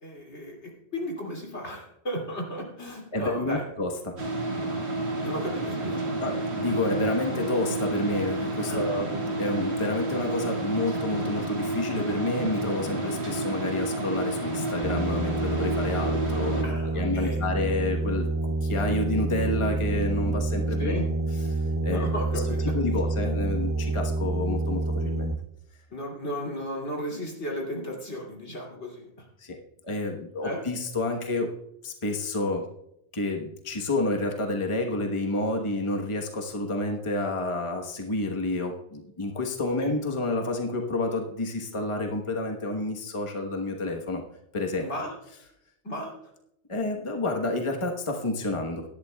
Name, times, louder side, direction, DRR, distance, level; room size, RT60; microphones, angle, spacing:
voice 1, 0.0-3.6 5.2-6.0 8.7-8.9 16.6-17.5 20.8-21.1 21.9-22.7 25.9-29.3 30.4-30.6 39.8-39.9 44.8-45.1 45.8-46.1, equal, 80° left, 0 dB, 3.0 m, -34 dB
voice 2, 3.1-4.1 6.2-21.0 21.5-22.4 22.7-25.3 29.4-29.6 29.8-31.5 31.8-32.6 33.1-44.2 44.5-44.9 46.7-48.8, left 2 dB, 30° left, 2 dB, 1.2 m, -29 dB
sound 1, 4.2-16.6, right 2 dB, 70° right, 1.9 m, -30 dB
sound 2, 14.8-25.4, right 2 dB, 30° right, 0.4 m, -28 dB
17.5 x 12.0 x 2.3 m, 0.78 s
omnidirectional pair, 1.1 m